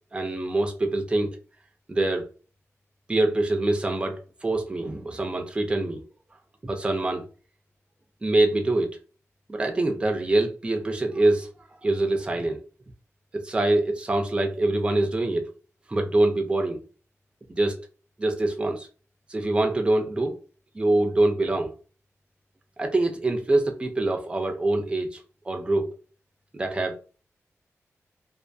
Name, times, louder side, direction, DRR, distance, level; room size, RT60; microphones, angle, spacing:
voice 1, 0.1-1.4 1.9-2.3 3.1-6.0 6.6-7.2 8.2-9.0 9.5-11.5 11.8-12.6 13.3-15.5 15.9-16.8 17.5-17.9 18.2-18.9 19.3-20.4 20.7-21.7 22.8-25.2 25.5-25.9 26.5-27.0, right 2 dB, 20° right, 3 dB, 0.4 m, -24 dB
2.5 x 2.4 x 2.3 m, 0.37 s
wide cardioid pair, 155°, 5 cm